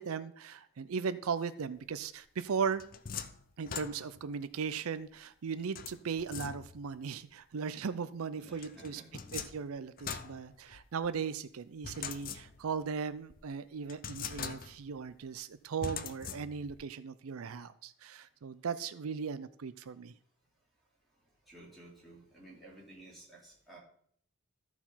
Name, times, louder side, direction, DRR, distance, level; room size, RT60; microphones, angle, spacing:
voice 1, 0.0-2.8 3.6-9.0 9.3-20.1, right 6 dB, 80° right, 14 dB, 0.5 m, -37 dB
sound 1, 2.4-4.4 5.8-7.0 8.6-11.1 11.8-12.8 13.3-13.4 13.9-15.0 15.8-16.8, left 6 dB, 40° left, 0.6 m, -43 dB
voice 2, 8.3-9.3 21.4-23.8, right 2 dB, ahead, -5 dB, 3.3 m, -54 dB
13.5 x 4.7 x 5.6 m, 0.63 s
head